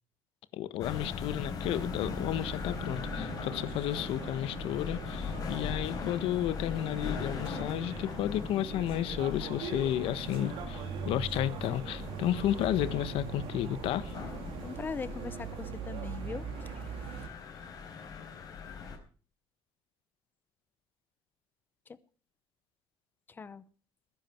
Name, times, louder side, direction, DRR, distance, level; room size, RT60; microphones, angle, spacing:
voice 1, 0.5-14.2, left 12 dB, 80° left, 1.3 m, -32 dB
sound 1, 0.8-19.0, left 5 dB, 40° left, 4.5 m, -40 dB
sound 2, 1.6-17.3, right 7 dB, 80° right, 2.5 m, -42 dB
voice 2, 14.6-16.5 23.3-23.6, left 5 dB, 20° left, 0.8 m, -40 dB
20.0 x 11.0 x 4.6 m
cardioid pair, 175°, 9 cm